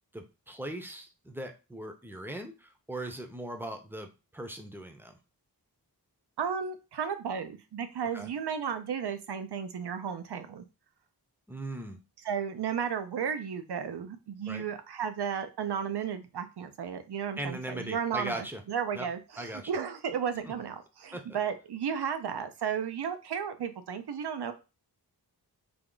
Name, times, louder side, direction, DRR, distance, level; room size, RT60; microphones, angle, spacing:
voice 1, 0.1-5.2 8.1-8.3 11.5-12.0 14.5-14.6 17.4-18.6 18.9-19.1 19.4-19.7 20.4-20.5 21.1-21.2, right 1 dB, 5° right, 5 dB, 0.6 m, -39 dB
voice 2, 6.4-10.6 12.2-24.5, right 7 dB, 80° right, 9 dB, 0.6 m, -34 dB
3.4 x 2.3 x 3.8 m, 0.29 s
wide cardioid pair, 90°, 39 cm